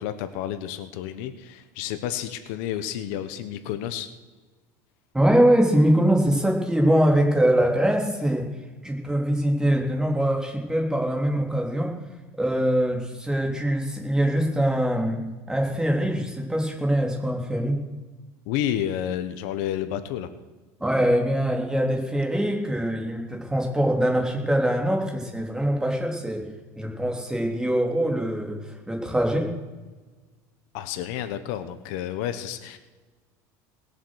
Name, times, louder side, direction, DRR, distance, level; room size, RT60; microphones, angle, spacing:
voice 1, 0.0-4.1 18.5-20.3 30.7-32.8, left 11 dB, 75° left, 11 dB, 1.2 m, -30 dB
voice 2, 5.1-8.5 8.8-11.9 12.4-15.2 15.5-17.8 20.8-26.4 26.8-29.5, right 1 dB, 5° right, 1 dB, 3.3 m, -23 dB
20.0 x 7.5 x 6.5 m, 1.2 s
supercardioid pair, 120°, 9 cm